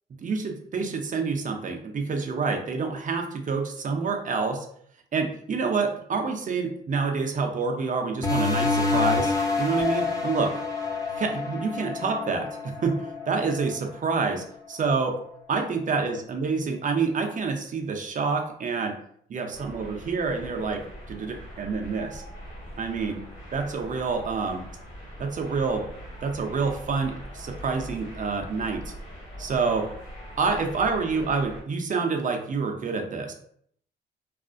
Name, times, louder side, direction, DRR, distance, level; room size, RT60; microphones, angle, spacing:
voice 1, 0.2-4.7 5.1-10.5 11.2-15.2 15.5-18.9 19.3-20.8 21.1-22.2 22.8-23.2 23.5-24.6 25.2-25.8 26.2-28.8 29.4-29.9 30.4-33.3, right 4 dB, 45° right, 3 dB, 0.5 m, -27 dB
sound 1, 8.2-13.4, left 3 dB, 20° left, 0.6 m, -27 dB
Chink clink, 9.8-16.1, left 8 dB, 65° left, 0.6 m, -37 dB
sound 2, 19.5-31.6, equal, 45° left, 1.3 m, -42 dB
2.4 x 2.1 x 2.5 m, 0.63 s
cardioid pair, 75°, 19 cm